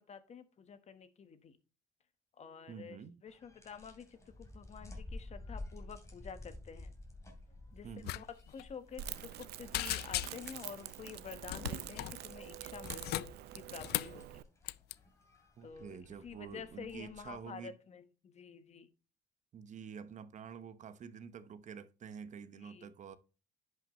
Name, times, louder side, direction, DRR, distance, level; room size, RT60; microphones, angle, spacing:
voice 1, 0.1-1.6 2.4-6.9 7.7-14.4 15.6-18.9 22.6-22.9, left 6 dB, 40° left, 1.2 m, -50 dB
voice 2, 2.7-3.2 7.8-8.2 15.6-17.7 19.5-23.2, right 7 dB, 45° right, 0.9 m, -48 dB
sound 1, 3.3-17.4, left 2 dB, 15° left, 2.8 m, -52 dB
sound 2, 8.0-8.2 8.5-8.6 9.1-9.4 9.7-10.6 11.5-12.2 12.7-14.2 14.6-14.9, left 16 dB, 70° left, 0.4 m, -38 dB
Crackle, 9.0-14.4, right 12 dB, 75° right, 0.6 m, -46 dB
10.5 x 5.8 x 3.0 m
cardioid pair, 110°, 17 cm